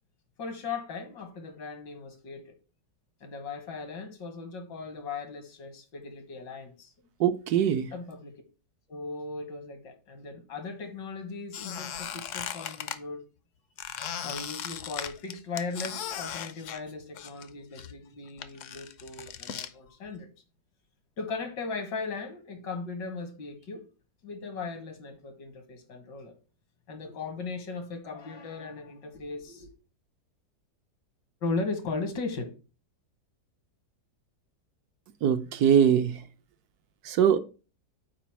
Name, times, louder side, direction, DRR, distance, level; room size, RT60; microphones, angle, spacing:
voice 1, 0.4-2.6 3.2-6.9 7.9-8.4 8.9-13.2 14.2-20.3 21.2-23.9 24.2-26.4 26.9-29.7 31.4-32.5, left 4 dB, 85° left, 2.1 m, -37 dB
voice 2, 7.2-7.9 35.2-36.2 37.1-37.4, right 8 dB, 70° right, 1.0 m, -22 dB
Squeak, 11.5-13.0 13.8-17.5 17.8-19.7, left 9 dB, 70° left, 0.7 m, -37 dB
5.1 x 4.7 x 5.8 m
omnidirectional pair, 1.9 m